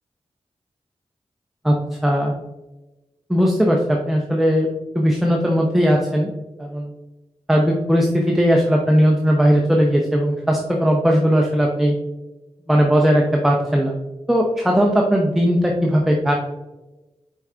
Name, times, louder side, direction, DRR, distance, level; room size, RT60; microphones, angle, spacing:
voice 1, 2.0-2.4 3.3-4.7 4.9-6.3 6.6-6.9 7.5-12.0 12.7-14.0 14.3-16.3, equal, ahead, 0 dB, 0.6 m, -18 dB
4.7 x 4.4 x 2.4 m, 1.1 s
cardioid pair, 45°, 12 cm